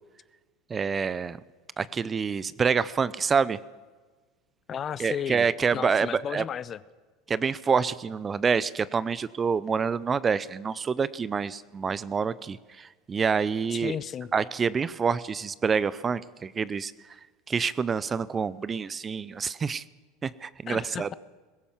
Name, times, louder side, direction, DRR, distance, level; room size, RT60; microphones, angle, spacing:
voice 1, 0.7-1.4 1.8-3.6 5.0-6.4 7.3-14.0 14.3-16.9 17.5-19.8 20.2-21.1, right 5 dB, 25° right, 18 dB, 0.7 m, -27 dB
voice 2, 4.7-5.5 5.7-6.8 13.7-14.3 20.7-21.2, left 8 dB, 35° left, 17 dB, 0.8 m, -34 dB
21.0 x 17.0 x 7.4 m, 1.4 s
hypercardioid pair, 90°, 0 cm